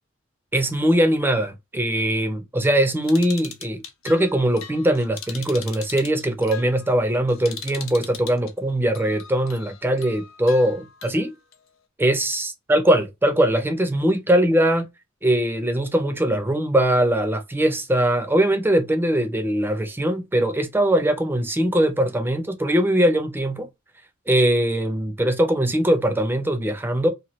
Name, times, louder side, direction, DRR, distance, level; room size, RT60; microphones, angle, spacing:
voice 1, 0.5-11.3 12.0-14.9 15.2-23.7 24.3-27.1, right 1 dB, 10° right, 0.5 m, -21 dB
sound 1, 3.0-8.5 8.9-11.6, left 7 dB, 85° left, 0.7 m, -40 dB
2.8 x 2.2 x 3.0 m
head